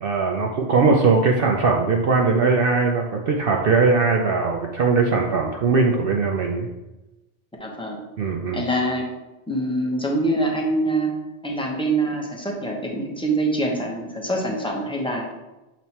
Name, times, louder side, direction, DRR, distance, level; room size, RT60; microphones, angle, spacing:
voice 1, 0.0-6.7 8.2-8.6, right 4 dB, 60° right, 1 dB, 0.7 m, -20 dB
voice 2, 7.6-8.0 8.5-9.1 9.5-11.1 11.4-15.3, right 1 dB, 5° left, -1 dB, 0.8 m, -24 dB
7.4 x 3.1 x 4.2 m, 1.0 s
omnidirectional pair, 1.2 m